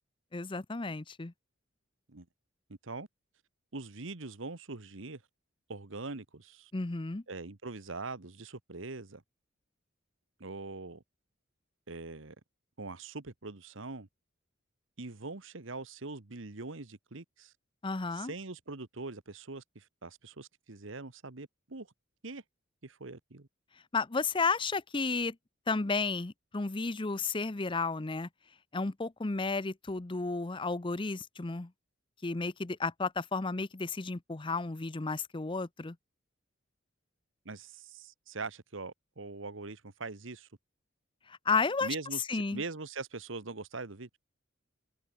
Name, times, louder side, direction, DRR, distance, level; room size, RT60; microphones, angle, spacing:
voice 1, 0.3-1.3 6.7-7.2 17.8-18.3 23.9-25.4 25.7-28.3 28.7-31.7 32.2-36.0 41.3-41.9 42.3-42.6, left 4 dB, 25° left, 0.7 m, -32 dB
voice 2, 3.7-5.2 5.7-6.7 7.3-9.2 10.4-11.0 11.9-12.3 12.8-14.1 15.0-17.5 18.1-21.9 22.2-22.4 22.8-23.5 37.4-40.5 41.8-44.1, right 3 dB, 70° right, 1.4 m, -42 dB
head